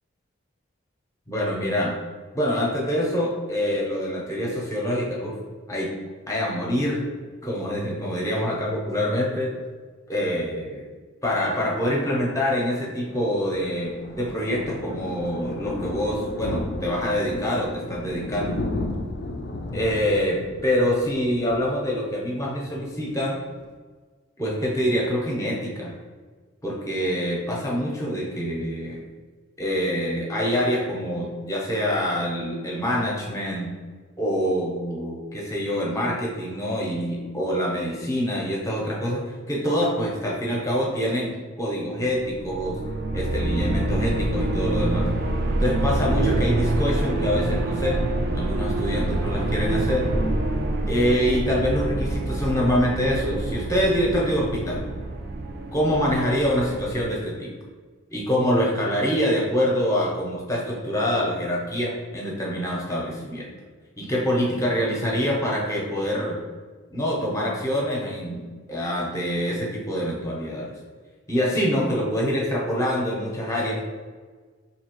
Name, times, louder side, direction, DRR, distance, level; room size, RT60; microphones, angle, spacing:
voice 1, 1.3-2.0 2.3-5.3 5.7-5.9 6.3-7.1 7.4-9.5 10.1-10.8 11.2-18.8 19.7-23.4 24.4-25.9 26.6-29.0 29.6-33.8 34.2-41.3 41.6-42.8 43.1-45.1 45.6-48.0 48.3-50.1 50.9-54.8 55.7-57.5 58.1-63.5 64.0-66.4 66.9-68.4 68.7-70.7 71.3-73.8, equal, 15° left, -3 dB, 0.7 m, -25 dB
Thunder, 13.1-22.5 22.8-23.0 23.3-23.4 23.6-23.7, left 2 dB, 50° left, 0.3 m, -34 dB
sound 1, 42.1-57.1, right 1 dB, 45° right, 0.3 m, -26 dB
4.4 x 2.8 x 2.9 m, 1.4 s
head